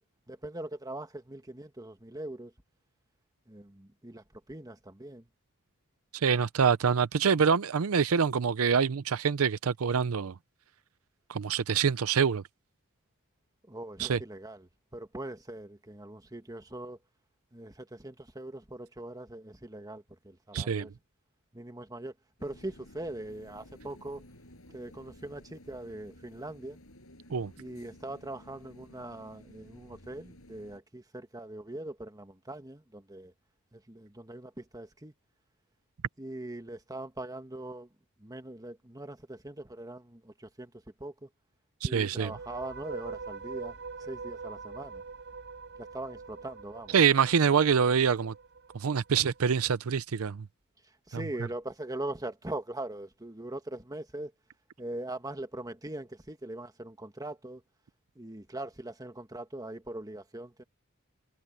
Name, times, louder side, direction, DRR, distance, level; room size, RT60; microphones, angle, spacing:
voice 1, 0.3-2.5 3.5-5.3 13.7-17.0 17.5-20.9 21.5-22.1 22.4-24.2 24.7-26.8 27.6-33.3 33.7-35.1 36.2-37.9 38.2-40.7 41.0-41.3 41.8-43.7 44.0-45.0 45.8-47.0 51.1-54.3 54.8-57.6 58.1-60.6, right 1 dB, 15° right, 1.7 m, -41 dB
voice 2, 6.1-10.3 11.3-12.4 14.0-14.2 20.5-20.9 27.3-27.5 41.8-42.3 46.9-48.3 48.7-50.4 51.1-51.2, right 6 dB, 75° right, 0.6 m, -25 dB
sound 1, 22.4-30.8, left 1 dB, 70° left, 7.6 m, -54 dB
sound 2, 42.1-49.4, right 4 dB, 55° right, 6.3 m, -44 dB
head